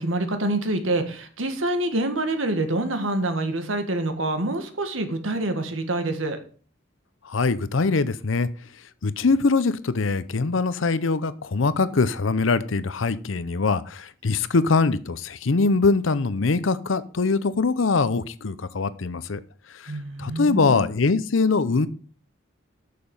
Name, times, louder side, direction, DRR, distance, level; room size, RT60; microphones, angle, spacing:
voice 1, 0.0-6.4 19.9-20.9, right 2 dB, 90° right, 1.7 m, -26 dB
voice 2, 7.2-8.5 9.0-19.4 19.7-19.9 20.2-21.9, left 4 dB, 80° left, 0.7 m, -23 dB
9.2 x 6.9 x 5.4 m
head